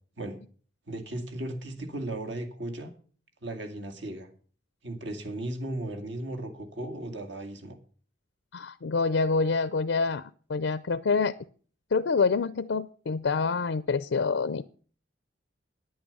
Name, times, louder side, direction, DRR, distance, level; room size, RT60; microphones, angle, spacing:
voice 1, 0.9-2.9 3.4-4.3 4.8-7.8, right 1 dB, 70° right, 6 dB, 2.1 m, -36 dB
voice 2, 8.5-10.2 10.5-11.3 11.9-14.6, left 4 dB, 75° left, 14 dB, 0.5 m, -26 dB
10.0 x 8.8 x 6.8 m, 0.43 s
head